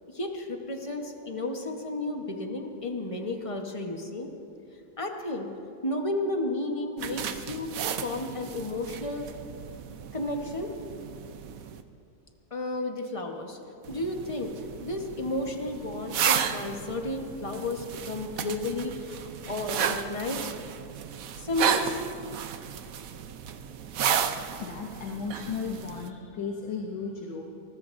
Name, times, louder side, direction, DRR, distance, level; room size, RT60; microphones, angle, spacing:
voice 1, 0.1-4.3 5.0-5.5 5.8-9.3 10.1-10.8 12.5-13.6 13.9-14.5 14.8-20.6 21.4-22.3, left 2 dB, 25° left, 3 dB, 0.8 m, -32 dB
sound 1, 7.0-11.8 13.8-26.1, right 8 dB, 75° right, 0.7 m, -33 dB
voice 2, 24.6-27.4, left 5 dB, 70° left, 1 dB, 1.8 m, -35 dB
25.0 x 21.0 x 2.6 m, 2.5 s
omnidirectional pair, 2.2 m